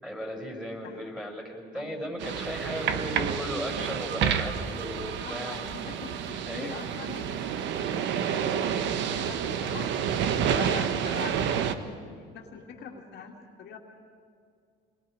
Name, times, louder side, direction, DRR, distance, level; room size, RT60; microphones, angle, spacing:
voice 1, 0.0-5.6 6.4-6.7 9.6-10.0, equal, 5° right, 1 dB, 5.6 m, -36 dB
sound 1, 2.2-11.8, right 8 dB, 65° right, 1.2 m, -29 dB
voice 2, 5.2-7.5 7.9-9.9 10.3-13.8, left 5 dB, 60° left, 0 dB, 2.4 m, -43 dB
28.5 x 21.5 x 5.1 m, 2.3 s
supercardioid pair, 100°, 20 cm